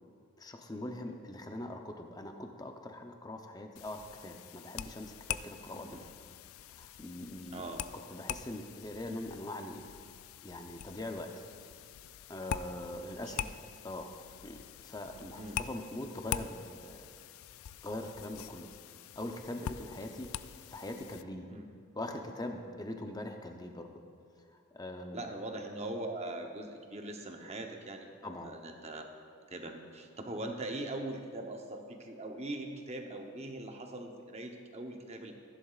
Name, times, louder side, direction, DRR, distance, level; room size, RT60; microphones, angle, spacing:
voice 1, 0.4-6.0 6.8-7.7 8.1-9.9 10.4-11.3 12.3-13.5 13.8-14.1 14.4-17.1 17.8-18.7 19.2-20.3 20.7-21.5 22.0-24.0 24.4-25.3 28.2-28.5, left 1 dB, 20° left, 4 dB, 0.6 m, -42 dB
sound 1, 3.8-21.2, left 9 dB, 75° left, 0.3 m, -44 dB
voice 2, 7.5-7.9 13.1-13.5 15.3-15.6 21.5-21.7 25.1-29.0 29.5-35.3, right 1 dB, 30° right, 3 dB, 0.8 m, -41 dB
15.0 x 10.5 x 2.4 m, 2.3 s
head